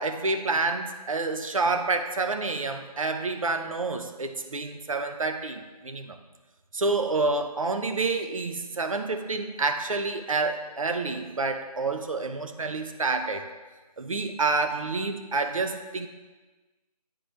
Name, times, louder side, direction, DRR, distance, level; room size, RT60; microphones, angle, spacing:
voice 1, 0.0-6.2 6.7-13.4 14.0-16.1, right 3 dB, 55° right, 7 dB, 0.7 m, -28 dB
9.6 x 3.9 x 3.2 m, 1.3 s
figure-of-eight pair, 165°, 20 cm